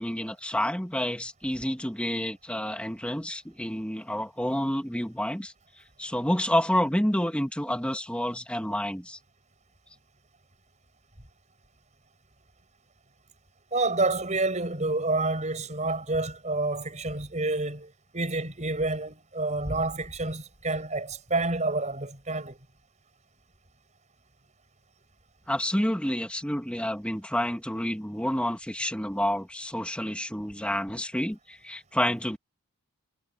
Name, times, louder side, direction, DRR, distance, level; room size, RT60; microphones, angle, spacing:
voice 1, 0.0-5.5 6.0-9.2 25.5-32.4, equal, 5° left, 2.2 m, -29 dB
voice 2, 13.7-22.6, right 2 dB, 30° right, 6.1 m, -28 dB
head